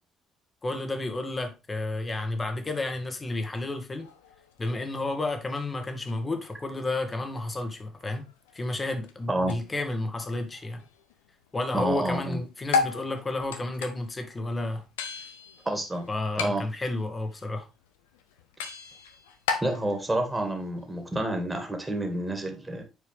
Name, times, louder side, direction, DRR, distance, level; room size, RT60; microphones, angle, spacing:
voice 1, 0.6-4.1 4.6-8.2 8.5-10.9 11.5-14.8 16.1-17.7, left 2 dB, 30° left, 1.8 m, -31 dB
sound 1, 4.0-11.8 12.0-21.1, left 5 dB, 80° left, 0.7 m, -37 dB
voice 2, 11.7-12.4 15.7-16.1 16.4-16.6 19.6-22.8, right 1 dB, 15° right, 2.0 m, -29 dB
8.2 x 4.7 x 3.4 m
hypercardioid pair, 50°, 0 cm